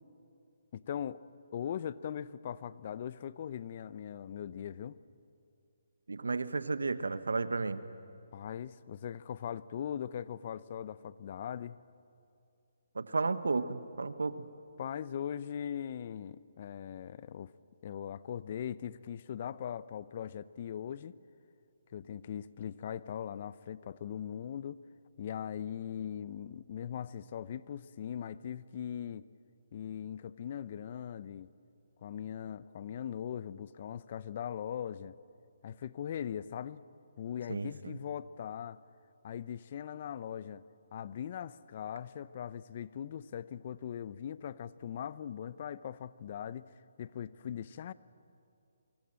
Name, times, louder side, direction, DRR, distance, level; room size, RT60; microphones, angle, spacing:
voice 1, 0.7-1.2 1.5-5.0 8.3-11.8 14.8-17.5 17.8-21.2 21.9-24.8 25.2-29.3 29.7-31.5 32.0-35.2 35.6-36.8 37.2-38.8 39.2-40.6 40.9-46.7 47.0-47.9, left 9 dB, 45° left, 18 dB, 0.7 m, -40 dB
voice 2, 6.1-7.8 12.9-14.4 37.5-37.9, right 3 dB, 85° right, 13 dB, 1.3 m, -33 dB
25.0 x 24.0 x 7.6 m, 2.5 s
hypercardioid pair, 150°, 0 cm